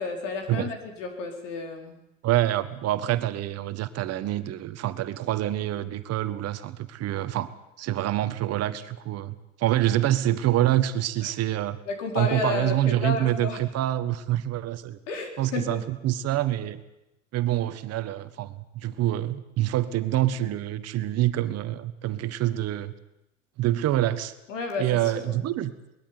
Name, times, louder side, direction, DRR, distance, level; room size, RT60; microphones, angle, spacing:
voice 1, 0.0-2.0 11.2-11.3 11.9-13.6 15.1-15.8 24.5-25.4, left 4 dB, 80° left, 4 dB, 4.5 m, -32 dB
voice 2, 2.2-7.5 7.8-11.8 12.1-15.0 15.4-16.8 17.3-22.9 23.6-24.3 24.8-25.7, right 13 dB, 40° right, 12 dB, 1.4 m, -26 dB
20.5 x 13.5 x 9.7 m, 0.91 s
supercardioid pair, 110°, 37 cm